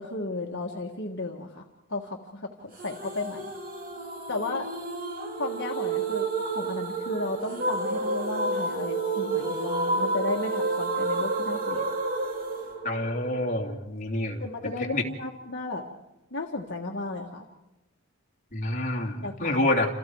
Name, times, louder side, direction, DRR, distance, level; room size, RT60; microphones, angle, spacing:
voice 1, 0.0-1.6 1.9-3.5 4.3-4.7 5.4-11.9 14.4-15.8 16.3-17.5 19.2-19.6, left 2 dB, 55° left, 1 dB, 1.7 m, -34 dB
sound 1, 2.8-13.7, right 3 dB, 40° right, 2.7 m, -30 dB
voice 2, 12.8-14.4 14.9-15.0 18.5-19.9, left 1 dB, 35° left, 1 dB, 2.8 m, -27 dB
28.5 x 28.0 x 4.8 m, 1.0 s
head